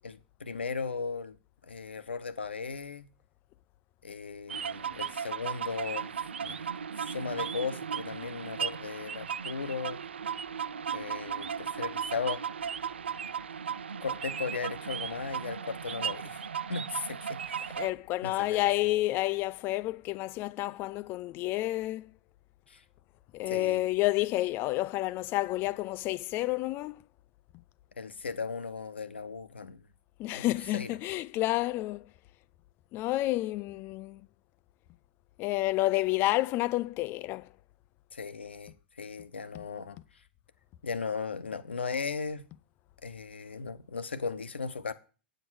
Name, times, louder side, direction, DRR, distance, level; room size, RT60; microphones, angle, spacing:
voice 1, 0.0-1.4 1.6-3.1 4.0-6.1 6.4-6.7 7.0-10.0 10.9-12.5 14.0-17.7 18.2-18.6 22.7-22.8 23.5-23.8 28.0-29.8 30.3-30.4 30.7-30.9 38.1-40.2 40.8-42.4 43.0-44.9, left 5 dB, 90° left, 1.0 m, -37 dB
sound 1, 4.5-17.9, right 7 dB, 85° right, 0.4 m, -36 dB
voice 2, 17.8-22.1 23.3-27.0 30.2-32.1 32.9-34.2 35.4-37.5 39.5-39.6, left 17 dB, 40° left, 0.5 m, -30 dB
8.9 x 7.8 x 6.3 m
hypercardioid pair, 110°, 6 cm